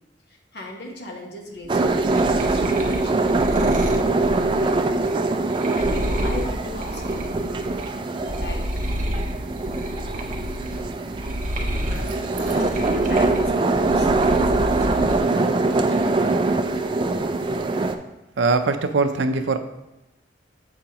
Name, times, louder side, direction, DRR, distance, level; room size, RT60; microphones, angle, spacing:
voice 1, 0.3-4.8 5.7-7.4 8.2-8.7 11.9-16.0, left 1 dB, 60° left, 1 dB, 1.1 m, -36 dB
sound 1, 1.6-7.9 8.2-15.2 15.6-16.3, equal, 45° right, 0.7 m, -30 dB
sound 2, 1.7-17.9, right 3 dB, 25° right, 0.3 m, -23 dB
voice 2, 18.4-19.6, right 3 dB, 80° right, 8 dB, 0.5 m, -21 dB
7.8 x 5.0 x 2.9 m, 0.98 s
head